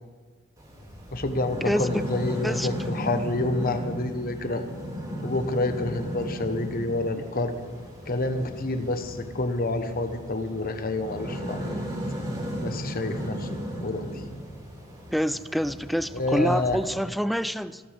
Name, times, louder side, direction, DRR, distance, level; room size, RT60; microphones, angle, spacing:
sound 1, 0.6-16.9, equal, 20° right, 5.1 m, -35 dB
voice 1, 1.1-4.7 5.2-7.6 8.1-11.7 12.6-14.1 16.1-16.8, left 2 dB, 45° left, 7 dB, 1.2 m, -28 dB
voice 2, 1.6-2.0 2.4-2.7 15.1-17.8, equal, ahead, 14 dB, 0.4 m, -27 dB
29.5 x 13.0 x 3.5 m, 1.5 s
head